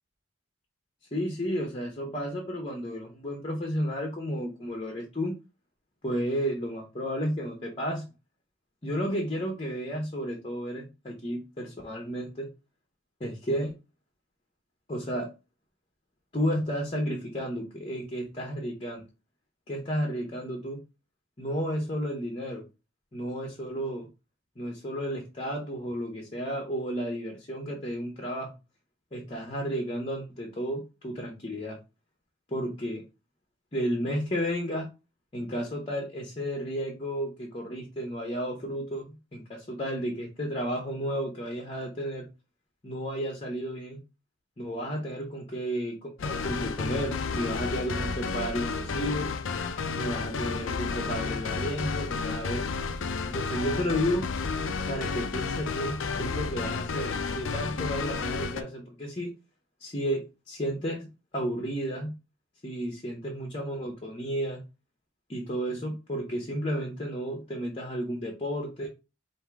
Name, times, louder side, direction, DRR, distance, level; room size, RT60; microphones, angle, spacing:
voice 1, 1.1-5.3 6.0-8.0 8.8-12.5 13.2-13.7 14.9-15.3 16.3-19.0 19.7-20.8 21.4-22.7 23.1-24.1 24.6-28.5 29.1-31.8 32.5-33.0 33.7-34.9 35.3-42.2 42.8-44.0 44.6-49.3 49.9-52.7 53.3-54.2 54.9-59.3 59.8-61.1 61.3-62.1 62.6-64.6 65.3-68.9, equal, 30° left, 1 dB, 0.8 m, -32 dB
sound 1, 46.2-58.6, left 4 dB, 70° left, 0.5 m, -31 dB
3.6 x 2.6 x 4.5 m, 0.28 s
head